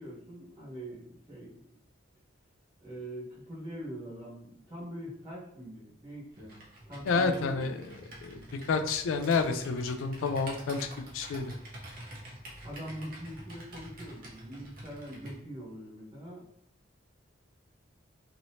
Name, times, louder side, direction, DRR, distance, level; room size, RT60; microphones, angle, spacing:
voice 1, 0.0-1.8 2.8-6.6 6.8-7.8 12.6-16.4, right 1 dB, 25° right, -7 dB, 1.4 m, -43 dB
Computer keyboard, 6.3-15.4, right 1 dB, 45° right, 0.8 m, -47 dB
voice 2, 7.1-7.8 8.2-11.5, left 4 dB, 80° left, 8 dB, 0.3 m, -29 dB
3.0 x 2.9 x 2.7 m, 0.70 s
head